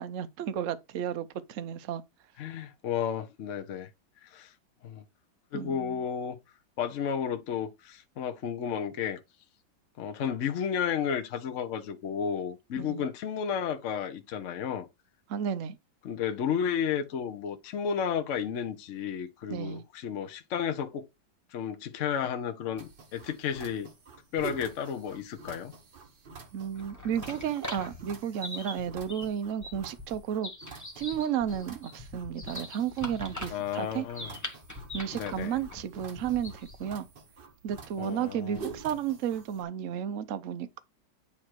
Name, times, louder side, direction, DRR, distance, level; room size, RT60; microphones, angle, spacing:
voice 1, 0.0-2.0 5.5-6.0 12.8-13.0 15.3-15.8 19.5-19.8 26.5-30.5 31.0-34.1 34.9-37.1 37.6-40.8, right 9 dB, 85° right, 0.7 m, -33 dB
voice 2, 2.4-3.9 4.2-4.5 4.8-5.0 5.5-6.4 6.8-9.2 10.0-14.9 16.0-21.0 21.5-23.9 24.3-25.7 33.5-34.4 35.1-35.6 38.0-38.6, left 8 dB, 60° left, 0.8 m, -32 dB
sound 1, 22.8-39.6, right 5 dB, 50° right, 0.6 m, -47 dB
sound 2, 26.6-36.9, left 1 dB, 10° left, 1.0 m, -42 dB
8.7 x 3.1 x 4.5 m
omnidirectional pair, 2.1 m